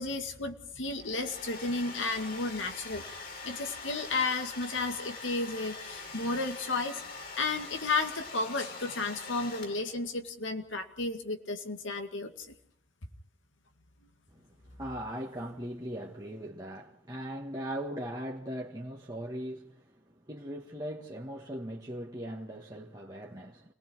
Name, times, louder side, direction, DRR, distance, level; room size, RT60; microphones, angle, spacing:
voice 1, 0.0-3.0 3.4-7.0 7.4-12.5, left 3 dB, 85° left, 2.2 m, -33 dB
Domestic sounds home sounds, 0.8-10.0, left 3 dB, 55° left, 3.2 m, -44 dB
voice 2, 14.8-23.7, equal, 20° right, 1.6 m, -39 dB
29.0 x 19.0 x 4.7 m
head